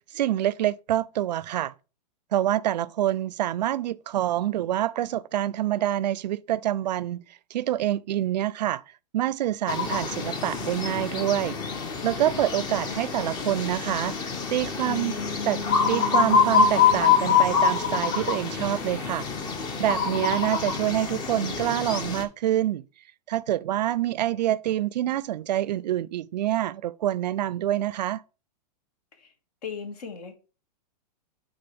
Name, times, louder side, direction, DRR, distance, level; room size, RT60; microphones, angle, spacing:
voice 1, 0.1-1.7 2.3-7.2 7.5-8.8 9.1-11.6 12.0-14.2 14.5-15.1 15.4-15.6 15.9-19.3 19.8-22.8 23.3-28.2, right 12 dB, 85° right, 0.4 m, -26 dB
sound 1, 9.7-22.2, left 6 dB, 20° left, 0.6 m, -25 dB
voice 2, 29.6-30.3, left 6 dB, 65° left, 1.7 m, -37 dB
8.9 x 3.8 x 3.4 m
hypercardioid pair, 155°, 21 cm